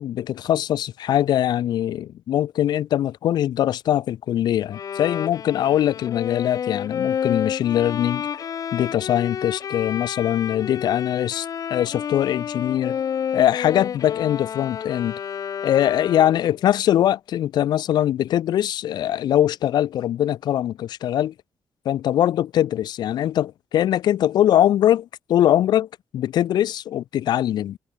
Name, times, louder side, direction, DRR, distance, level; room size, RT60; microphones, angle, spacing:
voice 1, 0.0-8.3 8.7-13.0 13.3-15.2 15.6-21.3 21.8-25.9 26.1-27.8, left 11 dB, 80° left, 4.2 m, -22 dB
Bowed string instrument, 4.7-16.6, left 8 dB, 55° left, 7.1 m, -30 dB
cardioid pair, 120°, 7 cm